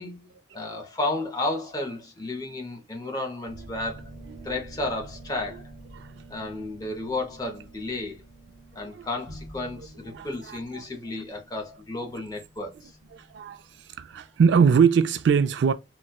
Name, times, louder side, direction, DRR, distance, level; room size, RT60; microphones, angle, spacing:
voice 1, 0.0-4.1 4.4-5.7 6.3-8.2 8.8-12.7, left 2 dB, 20° left, 0.6 m, -32 dB
sound 1, 3.5-14.6, right 1 dB, 55° right, 1.0 m, -48 dB
voice 2, 10.1-10.9 13.1-13.7 14.0-15.7, right 6 dB, 70° right, 0.3 m, -23 dB
4.1 x 2.2 x 2.2 m
head